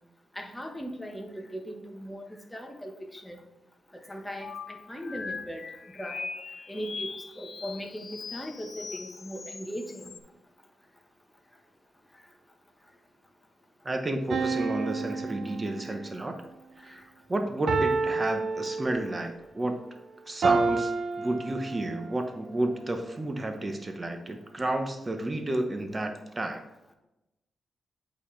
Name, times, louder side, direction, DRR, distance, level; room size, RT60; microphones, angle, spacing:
voice 1, 0.3-3.4 4.1-5.6 5.9-6.3 6.7-10.1 15.8-16.0 16.9-17.0, equal, 10° left, 3 dB, 1.2 m, -39 dB
sound 1, 4.4-10.2, left 5 dB, 50° left, 0.4 m, -41 dB
voice 2, 13.8-16.4 16.8-17.0 17.3-19.8 20.3-20.9 21.2-26.6, right 1 dB, 25° right, 6 dB, 0.9 m, -31 dB
sound 2, 14.3-16.2 17.7-19.3 20.4-22.1, right 4 dB, 70° right, 0.5 m, -29 dB
8.2 x 4.2 x 3.3 m, 0.93 s
cardioid pair, 80°, 0 cm